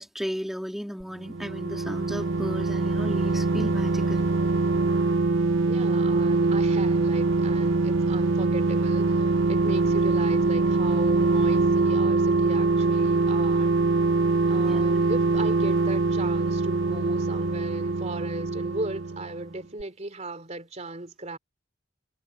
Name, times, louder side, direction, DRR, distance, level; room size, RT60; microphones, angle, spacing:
voice 1, 0.0-4.3 9.7-9.9 14.6-14.8, equal, ahead, 2.0 m, -35 dB
sound 1, 1.0-19.5 19.8-19.9, right 3 dB, 75° right, 0.8 m, -23 dB
voice 2, 5.7-13.7 14.5-21.4, right 2 dB, 35° right, 3.2 m, -36 dB
head